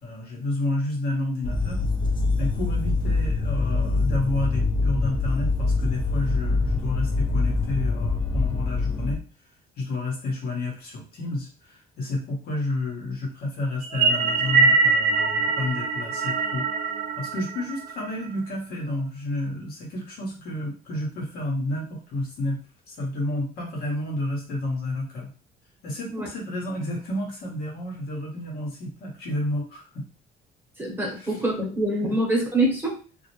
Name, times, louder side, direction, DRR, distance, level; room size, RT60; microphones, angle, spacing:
voice 1, 0.0-1.9 2.4-9.2 9.8-16.7 17.1-22.6 22.9-25.3 25.8-30.0 31.2-31.7, left 2 dB, 65° left, -1 dB, 1.1 m, -30 dB
sound 1, 1.4-9.2, left 3 dB, 30° left, 0.5 m, -24 dB
sound 2, 13.8-18.4, right 4 dB, 55° right, 0.5 m, -23 dB
voice 2, 30.8-33.0, right 1 dB, 10° right, -2 dB, 1.0 m, -25 dB
2.4 x 2.0 x 3.0 m, 0.36 s
cardioid pair, 110°, 17 cm